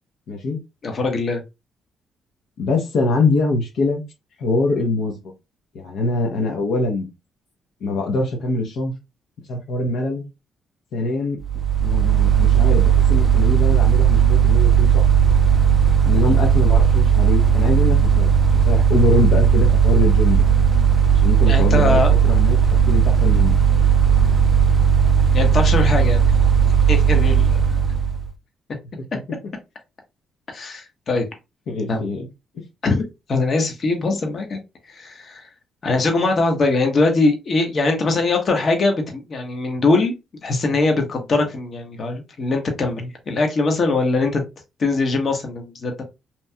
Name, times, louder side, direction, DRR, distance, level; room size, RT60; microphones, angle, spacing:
voice 1, 0.3-0.6 2.6-4.0 4.4-5.1 5.7-7.1 7.8-8.9 9.5-10.2 10.9-11.4 11.8-15.0 16.0-18.3 18.6-20.4 21.1-23.6 31.7-32.3, left 2 dB, 75° left, 2 dB, 0.7 m, -23 dB
voice 2, 0.8-1.4 21.5-22.1 25.3-26.3 26.9-27.8 30.5-31.3 31.9-32.0 32.8-33.0 33.3-34.6 34.9-35.5 35.8-44.4 44.8-46.0, left 3 dB, 50° left, 4 dB, 0.9 m, -21 dB
Mechanical fan, 11.4-28.3, right 7 dB, 30° right, 0.4 m, -16 dB
2.9 x 2.7 x 2.2 m, 0.24 s
cardioid pair, 90°, 0 cm